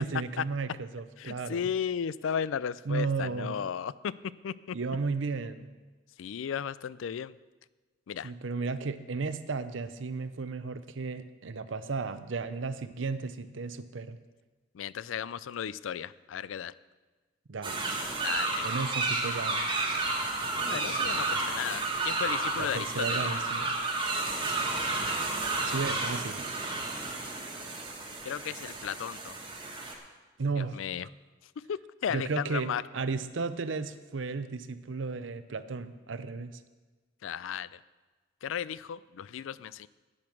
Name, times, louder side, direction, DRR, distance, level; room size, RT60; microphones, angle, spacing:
voice 1, 0.0-1.7 2.9-3.6 4.7-5.7 8.2-14.2 17.5-17.8 18.6-19.7 22.6-23.8 25.6-26.5 30.4-30.8 32.1-36.6, right 4 dB, 75° right, 13 dB, 0.6 m, -34 dB
voice 2, 1.2-4.1 4.4-4.8 6.2-7.3 8.1-8.3 14.7-16.7 18.2-18.7 20.6-23.2 28.2-29.4 30.7-31.1 31.7-32.8 37.2-37.8 38.4-39.9, left 8 dB, 90° left, 19 dB, 0.4 m, -34 dB
sound 1, 17.6-29.9, right 3 dB, 25° right, 1.4 m, -31 dB
10.5 x 8.8 x 6.0 m, 1.3 s
head